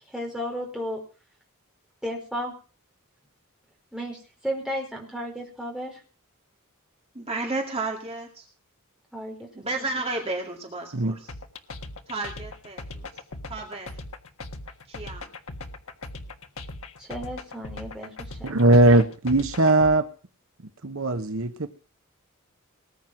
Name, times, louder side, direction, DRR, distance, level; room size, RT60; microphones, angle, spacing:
voice 1, 0.1-1.0 2.0-2.6 3.9-6.0 9.1-9.5 17.0-18.6, equal, 5° right, -1 dB, 4.7 m, -33 dB
voice 2, 7.1-8.5 9.5-11.3 12.1-13.2 13.5-14.0 14.9-15.3, right 2 dB, 25° right, 2 dB, 2.2 m, -32 dB
sound 1, 11.3-19.9, left 2 dB, 70° left, 1.5 m, -39 dB
voice 3, 18.4-20.1 20.8-21.7, right 2 dB, 65° right, 8 dB, 1.0 m, -19 dB
20.0 x 9.3 x 5.9 m, 0.38 s
head